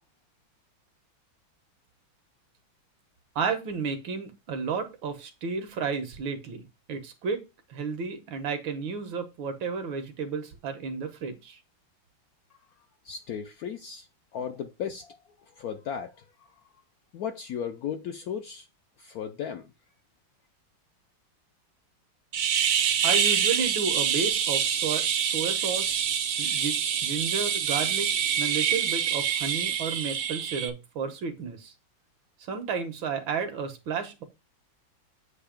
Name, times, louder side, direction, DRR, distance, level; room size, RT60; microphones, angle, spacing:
voice 1, 3.4-7.4 7.7-11.6 23.0-26.1 26.4-28.1 28.4-31.7 32.5-34.2, right 5 dB, 80° right, 1.9 m, -32 dB
voice 2, 13.1-14.1 14.3-15.2 15.6-16.1 17.1-18.6 19.0-19.6, left 8 dB, 75° left, 0.8 m, -35 dB
sound 1, 22.3-30.7, right 8 dB, 65° right, 0.8 m, -26 dB
8.0 x 2.8 x 5.0 m
omnidirectional pair, 2.1 m